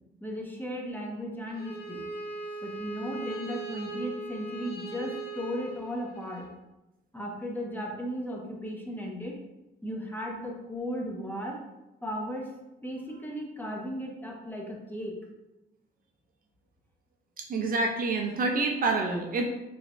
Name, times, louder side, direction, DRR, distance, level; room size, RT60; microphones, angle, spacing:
voice 1, 0.2-2.0 2.6-6.5 7.1-9.4 9.8-11.6 12.0-12.5 12.8-15.2, equal, 10° left, -1 dB, 0.7 m, -36 dB
Bowed string instrument, 1.5-6.5, right 3 dB, 55° left, 1.0 m, -39 dB
voice 2, 17.5-19.5, right 3 dB, 45° right, 2 dB, 0.5 m, -27 dB
3.2 x 3.1 x 2.5 m, 0.96 s
cardioid pair, 90°, 20 cm